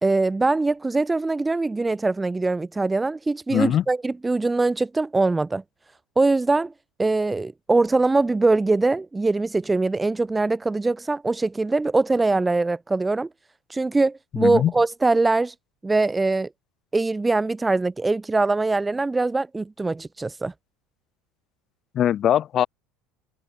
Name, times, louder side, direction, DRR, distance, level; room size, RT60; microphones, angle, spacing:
voice 1, 0.0-5.6 6.2-6.7 7.0-13.3 13.7-15.5 15.8-16.5 16.9-20.5, right 3 dB, 10° right, 3.0 m, -22 dB
voice 2, 3.5-3.8 14.4-14.7 21.9-22.7, left 10 dB, 35° left, 7.6 m, -21 dB
cardioid pair, 155°, 0 cm